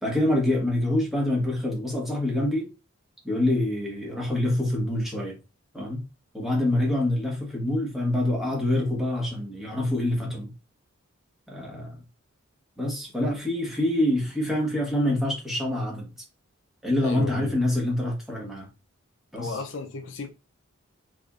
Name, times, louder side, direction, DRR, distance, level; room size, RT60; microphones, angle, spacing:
voice 1, 0.0-2.7 3.2-5.4 5.7-6.0 6.3-10.5 11.5-12.0 12.8-16.1 16.8-18.7 19.3-19.6, left 1 dB, ahead, 1.1 m, -26 dB
voice 2, 17.0-17.5 19.4-20.3, left 3 dB, 60° left, 0.5 m, -34 dB
3.4 x 3.4 x 2.4 m
head